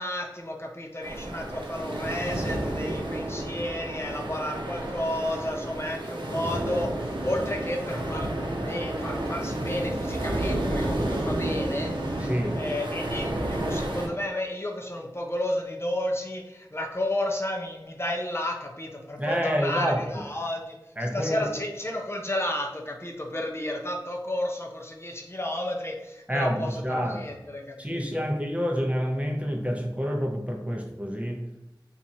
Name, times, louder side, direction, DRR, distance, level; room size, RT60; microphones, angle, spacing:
voice 1, 0.0-28.3, left 1 dB, 30° left, 0 dB, 0.5 m, -32 dB
sound 1, 1.0-14.1, right 1 dB, 85° right, 0.6 m, -31 dB
voice 2, 12.2-12.6 19.2-20.2 21.0-21.5 26.3-27.2 27.8-31.5, equal, 15° right, 1 dB, 0.6 m, -28 dB
2.9 x 2.4 x 4.0 m, 0.94 s
wide cardioid pair, 45°, 8 cm